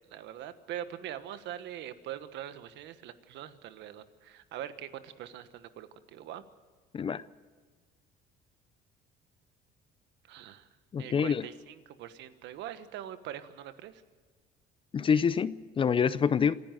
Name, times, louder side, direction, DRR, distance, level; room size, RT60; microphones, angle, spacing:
voice 1, 0.1-6.4 10.3-10.7 11.0-14.0, right 11 dB, 70° right, 11 dB, 1.3 m, -43 dB
voice 2, 10.9-11.5 14.9-16.6, left 6 dB, 25° left, 17 dB, 0.5 m, -26 dB
26.5 x 11.0 x 9.2 m, 1.4 s
cardioid pair, 135°, 19 cm